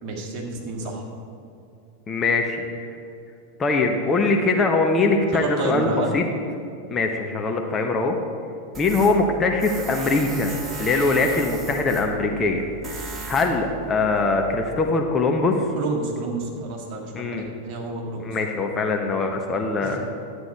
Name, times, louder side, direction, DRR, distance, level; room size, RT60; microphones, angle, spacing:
voice 1, 0.0-1.0 5.3-6.1 11.5-11.6 15.7-18.3 19.8-20.0, right 3 dB, 40° right, -2 dB, 1.9 m, -30 dB
voice 2, 2.1-2.9 3.6-6.2 6.9-8.2 8.8-10.5 10.8-15.7 17.1-17.4 18.2-20.0, left 3 dB, 20° left, 2 dB, 0.8 m, -22 dB
Tools, 8.7-14.9, right 4 dB, 20° right, 1.3 m, -37 dB
11.5 x 8.0 x 4.6 m, 2.6 s
figure-of-eight pair, 90°, 0 cm